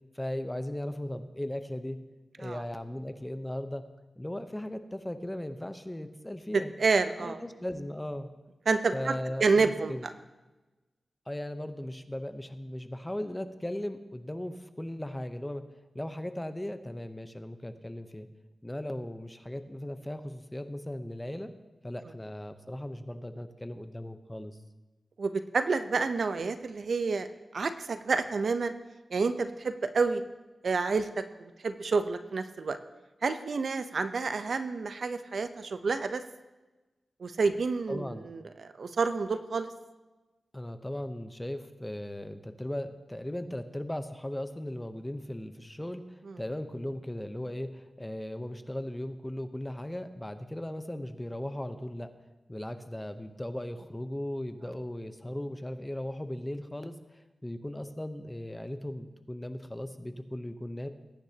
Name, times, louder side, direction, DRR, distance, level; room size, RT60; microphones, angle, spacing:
voice 1, 0.1-2.0 2.4-3.8 4.2-6.7 7.2-8.3 8.9-10.1 11.3-15.6 15.9-18.3 18.6-21.5 21.8-24.6 37.9-38.3 40.5-52.1 52.5-60.9, left 1 dB, 10° left, 9 dB, 0.8 m, -37 dB
voice 2, 6.8-7.4 8.7-9.1 9.4-10.0 25.2-27.3 27.5-28.7 29.1-30.2 30.6-32.8 33.2-36.2 37.2-39.7 46.3-46.4, right 4 dB, 65° right, 9 dB, 0.7 m, -29 dB
21.0 x 10.0 x 2.9 m, 1.1 s
wide cardioid pair, 90°, 0 cm